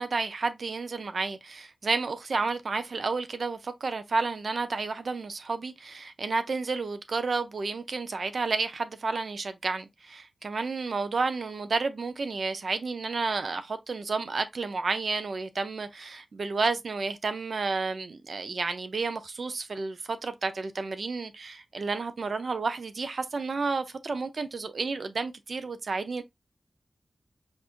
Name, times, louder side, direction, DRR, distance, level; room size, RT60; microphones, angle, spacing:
voice 1, 0.0-26.2, right 4 dB, 60° right, 0.5 m, -31 dB
5.2 x 2.5 x 2.4 m
wide cardioid pair, 120°, 0 cm